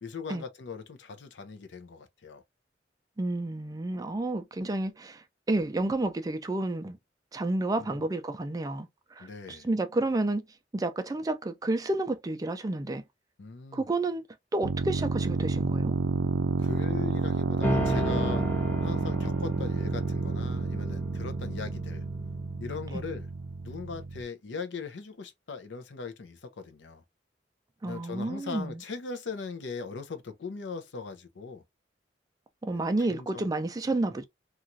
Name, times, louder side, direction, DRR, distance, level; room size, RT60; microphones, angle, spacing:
voice 1, 0.0-2.4 7.8-8.1 9.2-9.7 13.4-13.9 16.6-18.5 18.8-22.0 22.6-23.3 23.6-27.0 27.8-31.6 32.7-33.5, left 4 dB, 80° left, 0.6 m, -40 dB
voice 2, 3.2-7.0 7.3-10.4 10.7-13.0 13.7-14.2 14.5-15.9 22.9-23.0 27.8-28.8 32.6-34.2, right 2 dB, 20° right, 0.3 m, -30 dB
sound 1, 14.6-24.2, right 4 dB, 85° right, 0.4 m, -30 dB
sound 2, 17.6-22.5, equal, 10° left, 0.7 m, -34 dB
2.9 x 2.4 x 2.6 m
head